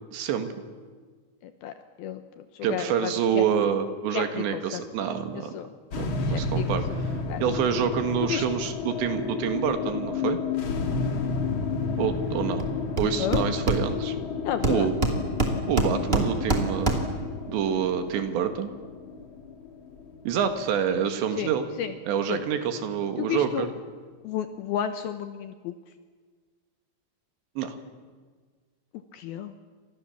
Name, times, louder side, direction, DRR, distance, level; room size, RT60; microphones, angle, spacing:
voice 1, 0.1-0.5 2.6-5.5 6.0-7.1 7.4-10.4 12.0-12.6 13.0-14.2 14.6-15.0 15.7-17.0 17.5-18.7 20.3-21.7 22.1-23.7 27.6-27.8, right 8 dB, 90° right, 7 dB, 4.1 m, -27 dB
voice 2, 1.4-1.7 2.0-2.4 2.7-3.4 4.1-4.8 5.5-5.7 6.3-6.8 7.3-7.4 8.2-8.4 13.2-13.4 14.4-14.9 20.9-21.0 21.4-21.5 21.8-21.9 22.3-22.4 23.2-23.7 24.2-25.7 29.1-29.5, left 10 dB, 75° left, 9 dB, 2.6 m, -31 dB
sound 1, 5.9-22.3, left 4 dB, 40° left, 2.0 m, -32 dB
Hammer, 12.6-12.7 13.0-14.2 14.6-17.3, right 1 dB, 20° right, 1.9 m, -26 dB
30.0 x 26.5 x 7.3 m, 1.5 s
omnidirectional pair, 4.9 m